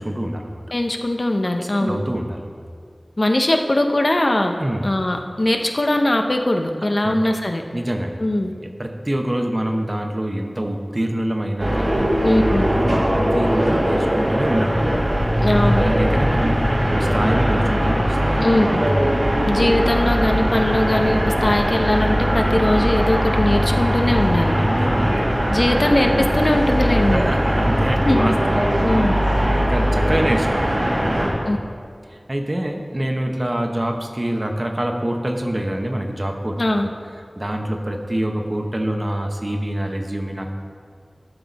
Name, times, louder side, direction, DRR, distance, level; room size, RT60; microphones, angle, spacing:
voice 1, 0.0-0.6 1.4-2.6 4.6-4.9 7.0-7.1 7.7-8.2 8.5-12.1 12.7-15.1 15.7-18.4 18.7-19.2 24.5-25.5 27.1-31.5 32.1-36.6 37.4-40.5, right 1 dB, 40° right, 3 dB, 0.9 m, -26 dB
voice 2, 0.7-2.0 3.2-4.6 4.8-7.6 8.2-8.5 12.2-12.7 15.4-15.8 18.4-18.8 19.4-24.6 25.5-27.2 28.0-28.3 28.8-29.1 31.5-31.6 36.6-36.9, left 1 dB, 60° left, 4 dB, 0.7 m, -20 dB
sound 1, 11.6-31.3, equal, 75° right, 1.9 m, -20 dB
12.0 x 6.2 x 4.1 m, 2.1 s
wide cardioid pair, 40°, 0 cm